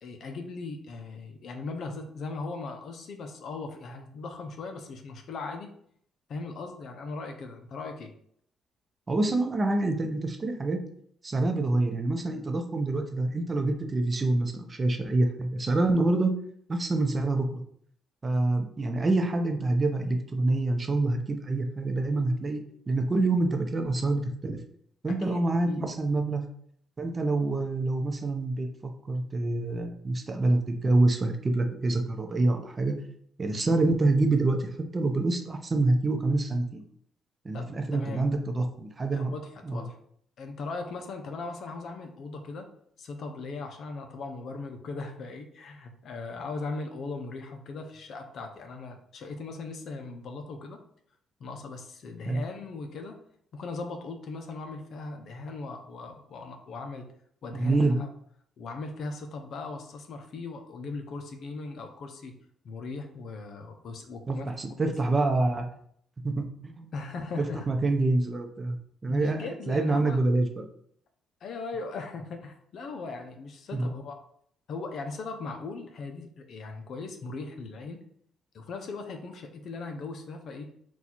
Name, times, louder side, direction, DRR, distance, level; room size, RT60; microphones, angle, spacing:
voice 1, 0.0-5.7 6.3-8.2 25.1-25.9 37.5-38.2 39.1-39.9 40.4-42.7 43.0-50.8 51.4-53.2 53.5-57.1 57.4-58.1 58.6-62.3 62.6-64.5 66.9-67.7 69.1-70.2 71.4-74.2 74.7-78.0 78.5-80.7, left 3 dB, 65° left, 5 dB, 0.5 m, -38 dB
voice 2, 9.1-10.8 11.2-16.3 16.7-17.6 18.2-22.6 22.9-24.6 25.0-26.4 27.0-33.0 33.4-36.8 37.4-39.3 39.6-39.8 52.3-52.4 57.5-58.0 64.3-65.7 66.2-66.9 67.4-68.8 69.0-70.7 73.7-73.9, right 2 dB, 30° right, 5 dB, 0.6 m, -26 dB
4.1 x 2.4 x 4.2 m, 0.66 s
cardioid pair, 90°, 0 cm